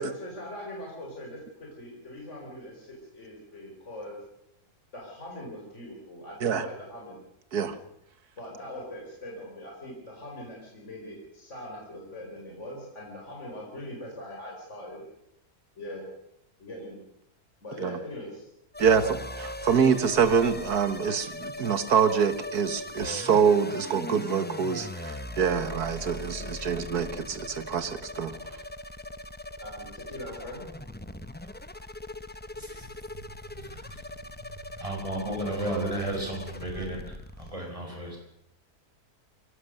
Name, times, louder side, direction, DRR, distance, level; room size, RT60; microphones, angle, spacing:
voice 1, 0.0-4.2 4.9-7.3 8.4-15.0 15.8-16.1 16.6-17.0 17.6-18.5 18.8-19.2 29.6-30.6 33.6-33.7 34.0-34.3 36.7-36.8, left 1 dB, 50° left, -1 dB, 5.2 m, -41 dB
sound 1, 18.7-37.5, left 1 dB, 15° left, 0.3 m, -40 dB
voice 2, 18.8-19.2 19.6-28.4, right 6 dB, 80° right, 11 dB, 1.9 m, -25 dB
voice 3, 32.6-34.1 34.4-38.2, right 1 dB, 20° right, 1 dB, 5.9 m, -35 dB
23.0 x 17.5 x 6.6 m, 0.78 s
omnidirectional pair, 1.6 m